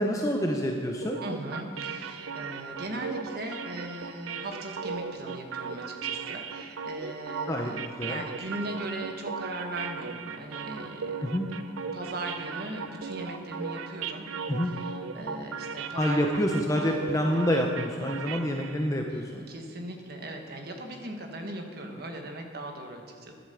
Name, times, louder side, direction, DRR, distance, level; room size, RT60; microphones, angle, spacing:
voice 1, 0.0-1.2 7.5-7.7 8.0-8.2 11.2-11.5 14.5-14.7 15.9-19.5, equal, 15° left, 2 dB, 0.6 m, -27 dB
sound 1, 1.0-18.9, right 5 dB, 90° right, 0.6 m, -37 dB
voice 2, 1.2-11.3 11.9-14.3 14.6-16.2 19.1-23.3, right 1 dB, 50° right, 3 dB, 1.4 m, -39 dB
11.0 x 8.1 x 6.9 m, 2.4 s
head